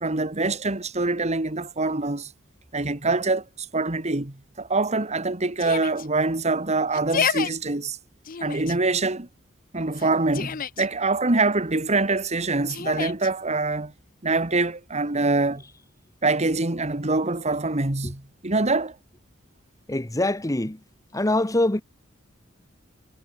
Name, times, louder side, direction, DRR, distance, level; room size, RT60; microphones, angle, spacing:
voice 1, 0.0-2.3 2.7-8.0 8.4-9.3 9.7-13.9 14.2-15.6 16.2-19.0, right 3 dB, 35° right, 1.9 m, -24 dB
Yell, 5.6-6.1 6.9-7.5 8.2-8.8 9.9-10.9 12.7-13.3, left 7 dB, 45° left, 0.7 m, -29 dB
voice 2, 19.9-20.8 21.1-21.8, left 1 dB, 15° left, 1.2 m, -23 dB
head